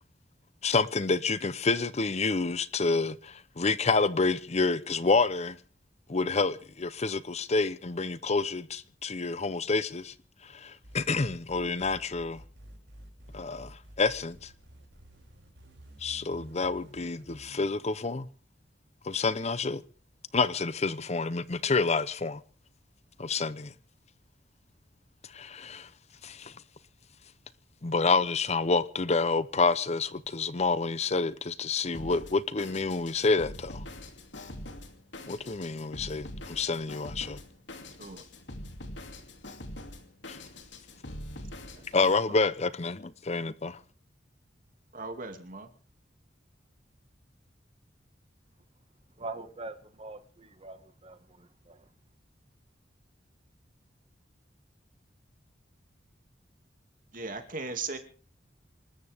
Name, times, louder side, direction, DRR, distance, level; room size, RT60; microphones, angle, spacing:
voice 1, 0.6-5.6 6.1-10.1 10.4-12.4 13.3-14.5 16.0-18.3 19.0-19.8 20.3-22.4 23.2-23.7 25.3-25.9 26.2-26.5 27.8-33.8 35.3-37.4 40.3-40.4 41.9-43.8, left 4 dB, 40° left, 0.7 m, -28 dB
sound 1, 10.8-17.7, equal, 80° right, 5.9 m, -50 dB
Drum kit, 31.9-42.2, left 1 dB, 80° left, 2.8 m, -44 dB
voice 2, 44.9-45.7 57.1-58.0, right 4 dB, 50° right, 2.5 m, -37 dB
voice 3, 49.2-51.9, right 2 dB, 35° right, 1.7 m, -43 dB
27.0 x 13.5 x 3.6 m
head